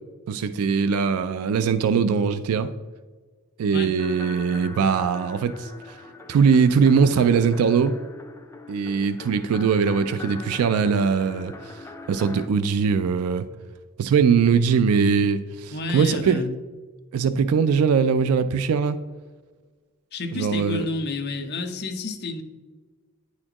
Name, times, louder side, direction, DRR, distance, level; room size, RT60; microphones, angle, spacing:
voice 1, 0.3-2.7 3.6-6.0 6.3-8.0 8.7-13.5 14.0-16.5 17.1-19.0 20.3-20.9, right 6 dB, 75° right, 12 dB, 0.3 m, -21 dB
sound 1, 4.0-12.5, left 3 dB, 10° left, 0.3 m, -41 dB
voice 2, 15.7-16.6 20.1-22.4, left 3 dB, 50° left, 5 dB, 0.7 m, -30 dB
9.7 x 4.2 x 2.9 m, 1.4 s
head